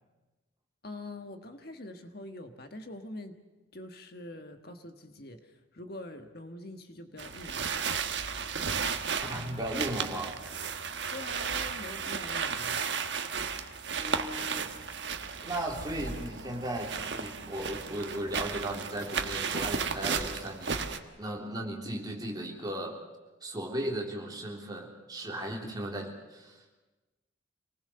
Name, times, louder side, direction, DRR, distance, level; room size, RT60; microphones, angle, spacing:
voice 1, 0.8-3.4 3.7-7.8 11.1-13.0, left 1 dB, 50° left, 6 dB, 1.5 m, -44 dB
sound 1, 7.2-21.0, right 6 dB, 65° right, 1.4 m, -34 dB
voice 2, 9.3-10.3 14.0-14.7 15.4-22.9 23.4-26.6, right 1 dB, 20° right, 0 dB, 3.5 m, -36 dB
26.5 x 19.5 x 6.8 m, 1.1 s
head